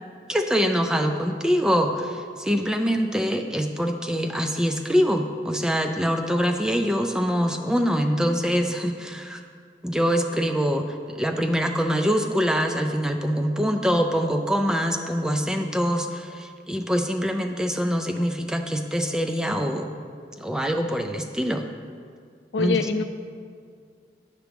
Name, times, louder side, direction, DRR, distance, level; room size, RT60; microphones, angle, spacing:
voice 1, 0.3-9.4 9.8-19.9 20.4-21.7 22.6-22.8, equal, 5° right, 4 dB, 0.3 m, -24 dB
voice 2, 22.5-23.0, left 4 dB, 80° left, 9 dB, 0.4 m, -24 dB
9.2 x 6.0 x 3.4 m, 2.2 s
head